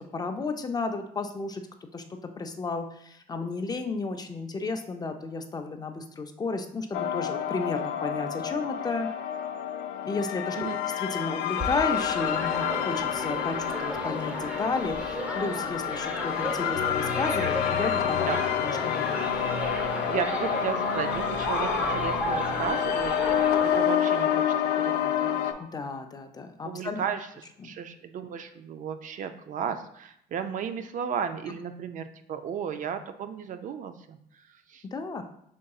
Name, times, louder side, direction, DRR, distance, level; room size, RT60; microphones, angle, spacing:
voice 1, 0.0-1.6 1.9-9.1 10.0-10.7 11.0-18.3 18.6-19.2 25.6-27.0 27.6-27.7 34.9-35.2, left 3 dB, 25° left, 6 dB, 0.4 m, -33 dB
sound 1, 6.9-25.5, left 9 dB, 85° left, 0.4 m, -29 dB
sound 2, 11.6-23.8, equal, 10° right, 0.8 m, -34 dB
sound 3, 16.7-25.6, left 5 dB, 70° left, 0.8 m, -38 dB
voice 2, 20.1-25.4 26.7-34.2 34.7-34.8, right 7 dB, 50° right, 9 dB, 0.4 m, -34 dB
5.1 x 3.7 x 2.3 m, 0.71 s
cardioid pair, 110°, 17 cm